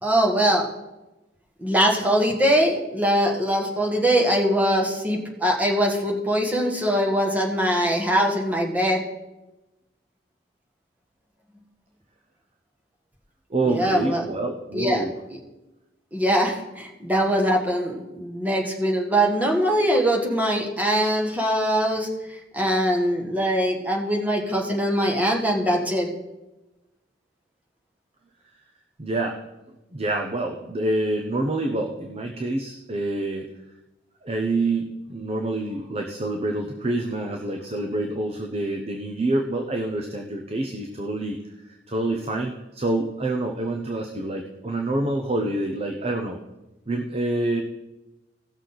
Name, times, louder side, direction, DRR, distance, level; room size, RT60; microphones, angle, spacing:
voice 1, 0.0-0.7 1.6-9.0 13.6-14.2 14.7-15.0 16.1-22.1 22.5-26.1, equal, 10° right, -1 dB, 1.5 m, -22 dB
voice 2, 13.5-15.1 29.0-29.4 29.9-33.5 34.2-41.4 41.9-46.4 46.9-47.6, right 2 dB, 35° right, 3 dB, 0.8 m, -27 dB
17.0 x 6.5 x 4.0 m, 1.0 s
head